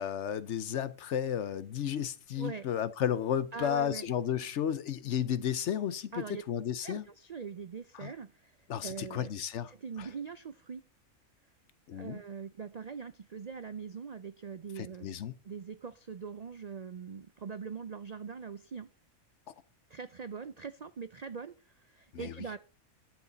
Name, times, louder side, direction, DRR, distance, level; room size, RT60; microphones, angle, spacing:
voice 1, 0.0-6.1 6.5-7.0 8.0-8.1 8.7-9.7 10.0-10.1 11.9-12.2 14.8-15.3 22.1-22.3, left 9 dB, 65° left, 0.9 m, -33 dB
voice 2, 3.5-4.1 6.1-6.4 6.8-9.3 9.7-10.8 11.9-15.2 15.4-18.9 19.9-22.6, right 5 dB, 65° right, 0.4 m, -42 dB
11.5 x 8.0 x 4.0 m
omnidirectional pair, 1.4 m